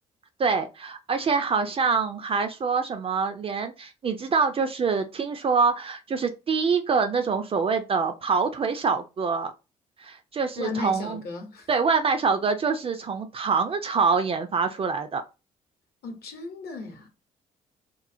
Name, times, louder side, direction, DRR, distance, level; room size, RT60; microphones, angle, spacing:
voice 1, 0.4-9.5 10.0-11.2 11.7-15.2, right 5 dB, 30° right, 0.4 m, -25 dB
voice 2, 10.6-11.7 16.0-17.1, left 4 dB, 50° left, 0.8 m, -35 dB
3.0 x 2.0 x 2.5 m
figure-of-eight pair, 45°, 21 cm